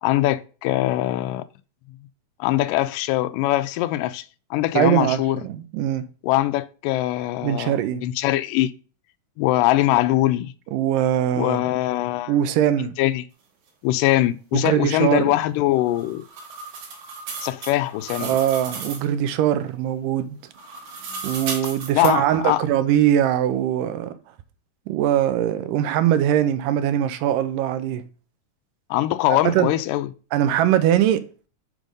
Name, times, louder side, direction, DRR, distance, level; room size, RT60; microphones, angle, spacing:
voice 1, 0.0-1.4 2.4-4.3 4.5-5.4 6.2-8.7 9.4-10.5 11.3-12.4 13.0-13.2 13.8-16.3 17.4-18.3 21.9-22.6 28.9-30.1, left 15 dB, 85° left, 2.1 m, -22 dB
voice 2, 4.7-6.1 7.4-8.0 10.7-11.6 12.3-13.0 14.5-15.3 18.2-20.4 21.2-24.1 24.9-28.0 29.3-29.7 30.3-31.5, right 11 dB, 80° right, 2.2 m, -21 dB
sound 1, 15.8-19.1 20.5-22.1, right 4 dB, 65° right, 2.7 m, -35 dB
6.2 x 5.1 x 5.2 m
omnidirectional pair, 3.9 m